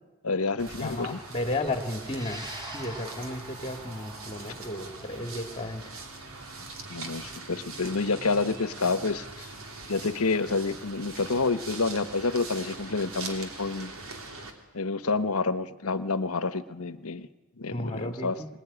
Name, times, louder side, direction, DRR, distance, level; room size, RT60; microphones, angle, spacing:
voice 1, 0.2-1.2 6.9-9.5 9.9-13.9 14.7-17.3 17.6-18.4, left 3 dB, 75° left, 12 dB, 1.2 m, -28 dB
sound 1, 0.6-14.5, right 3 dB, 65° right, 3.3 m, -42 dB
voice 2, 0.8-5.8 17.7-18.5, left 1 dB, 25° left, 6 dB, 2.2 m, -33 dB
sound 2, 2.0-10.5, right 1 dB, 20° right, 4.7 m, -46 dB
24.5 x 19.5 x 10.0 m, 1.2 s
head